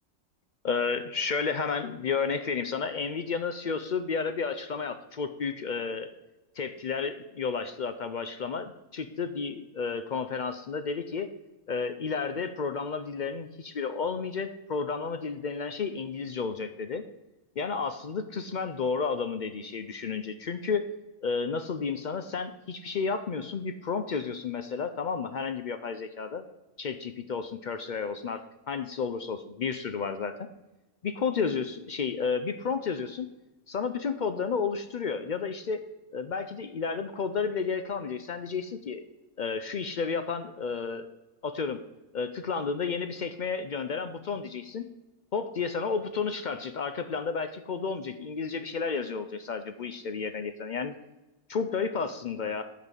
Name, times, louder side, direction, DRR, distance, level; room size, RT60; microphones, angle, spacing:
voice 1, 0.6-6.1 6.6-11.3 11.7-17.0 17.6-20.9 21.2-26.5 26.8-30.5 31.0-33.3 33.7-35.8 36.1-39.0 39.4-41.1 41.4-41.8 42.1-44.9 45.3-50.9 51.5-52.6, left 5 dB, 60° left, 9 dB, 0.5 m, -32 dB
11.0 x 4.0 x 7.2 m, 1.0 s
omnidirectional pair, 1.3 m